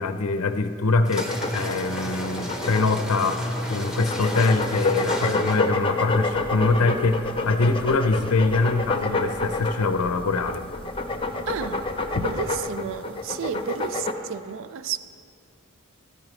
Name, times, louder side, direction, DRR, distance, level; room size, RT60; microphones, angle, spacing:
voice 1, 0.0-10.6 12.2-12.3, left 3 dB, 75° left, 8 dB, 0.6 m, -24 dB
sound 1, 1.0-5.8, equal, 5° right, 1.0 m, -32 dB
sound 2, 1.2-14.1, left 3 dB, 25° left, 0.7 m, -28 dB
sound 3, 6.3-12.6, right 1 dB, 80° right, 1.0 m, -44 dB
voice 2, 11.5-15.0, right 7 dB, 60° right, 13 dB, 0.4 m, -32 dB
15.5 x 13.0 x 3.2 m, 2.2 s
head